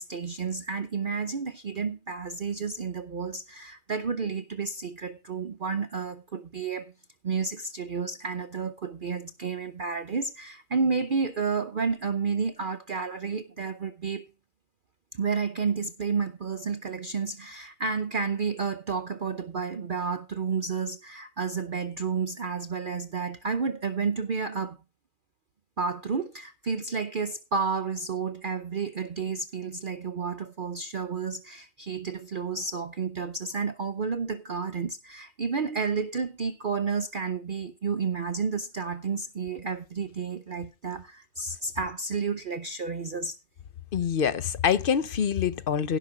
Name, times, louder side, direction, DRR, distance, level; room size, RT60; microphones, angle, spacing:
voice 1, 0.0-6.9 7.2-14.3 15.1-24.8 25.8-43.4, right 5 dB, 45° right, 0.8 m, -31 dB
voice 2, 43.9-46.0, left 7 dB, 50° left, 0.8 m, -25 dB
16.5 x 6.0 x 4.9 m
omnidirectional pair, 1.3 m